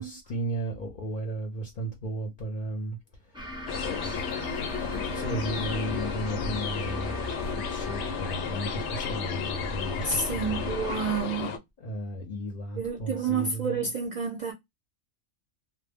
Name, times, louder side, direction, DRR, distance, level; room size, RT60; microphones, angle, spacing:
voice 1, 0.0-3.5 3.8-4.2 4.5-10.8 11.8-13.9, right 1 dB, 50° left, 0.7 m, -35 dB
sound 1, 3.3-11.2, equal, 5° right, 0.4 m, -38 dB
sound 2, 3.7-11.6, left 7 dB, 80° left, 0.9 m, -33 dB
voice 2, 10.0-11.6 12.8-14.5, right 5 dB, 50° right, 0.6 m, -29 dB
2.2 x 2.0 x 3.4 m
omnidirectional pair, 1.2 m